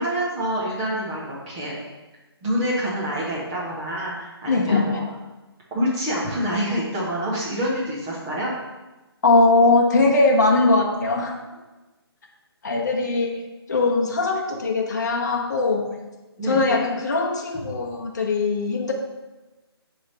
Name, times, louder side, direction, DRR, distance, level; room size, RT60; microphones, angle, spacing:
voice 1, 0.0-1.7 2.4-5.0 5.7-8.5 16.4-16.6, equal, 5° right, -6 dB, 0.5 m, -26 dB
voice 2, 4.5-5.1 9.2-11.4 12.6-15.9 16.4-18.9, left 3 dB, 45° left, 1 dB, 0.8 m, -20 dB
5.8 x 3.2 x 5.4 m, 1.1 s
hypercardioid pair, 175°, 14 cm